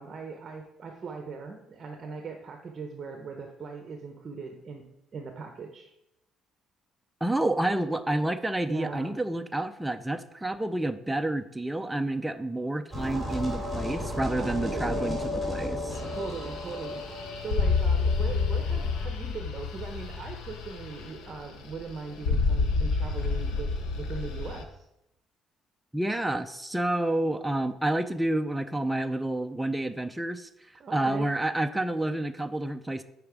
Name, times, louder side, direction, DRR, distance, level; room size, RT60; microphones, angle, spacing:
voice 1, 0.0-4.9 5.1-5.9 8.7-9.2 14.4-15.2 16.1-24.8 30.8-31.3, right 4 dB, 35° right, 4 dB, 0.7 m, -40 dB
voice 2, 7.2-16.0 25.9-33.0, right 1 dB, 5° right, 7 dB, 0.3 m, -29 dB
sound 1, 12.9-19.1, left 1 dB, 10° left, 3.1 m, -34 dB
sound 2, 15.9-24.6, left 4 dB, 90° left, 0.9 m, -29 dB
8.6 x 4.9 x 4.7 m, 0.86 s
cardioid pair, 160°, 0 cm